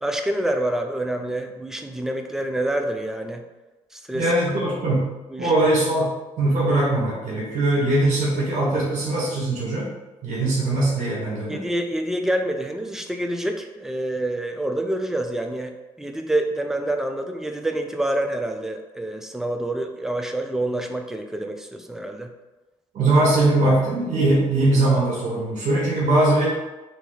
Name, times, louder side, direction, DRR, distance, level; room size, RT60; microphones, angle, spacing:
voice 1, 0.0-3.5 3.9-4.3 5.3-5.5 11.5-22.3, right 1 dB, 5° right, 4 dB, 0.5 m, -27 dB
voice 2, 4.1-5.1 5.4-9.9 10.2-11.6 22.9-26.5, right 2 dB, 60° right, -6 dB, 1.3 m, -21 dB
2.8 x 2.6 x 4.0 m, 1.1 s
hypercardioid pair, 55°, 14 cm